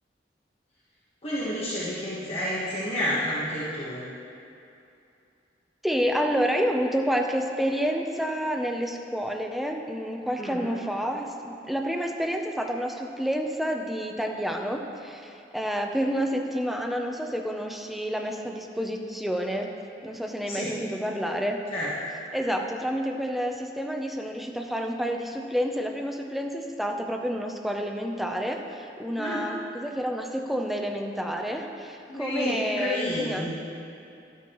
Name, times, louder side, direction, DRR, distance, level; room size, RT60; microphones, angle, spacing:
voice 1, 1.2-4.0 10.4-10.7 20.5-20.7 21.7-21.9 29.2-29.4 32.1-33.5, left 1 dB, 35° left, -9 dB, 1.4 m, -30 dB
voice 2, 5.8-19.7 20.0-21.6 22.3-33.5, equal, ahead, 2 dB, 0.6 m, -29 dB
12.0 x 9.4 x 3.1 m, 2.6 s
head